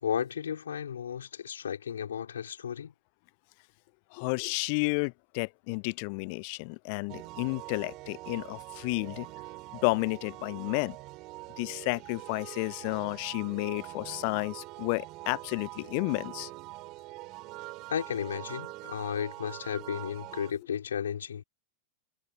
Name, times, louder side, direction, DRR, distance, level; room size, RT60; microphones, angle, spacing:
voice 1, 0.0-2.9 17.9-21.4, left 8 dB, 65° left, 5.4 m, -34 dB
voice 2, 4.1-9.3 9.8-11.0 11.6-16.5, left 35 dB, 45° left, 0.7 m, -31 dB
sound 1, 7.1-20.5, right 21 dB, 40° right, 5.5 m, -44 dB
figure-of-eight pair, 90°, 0 cm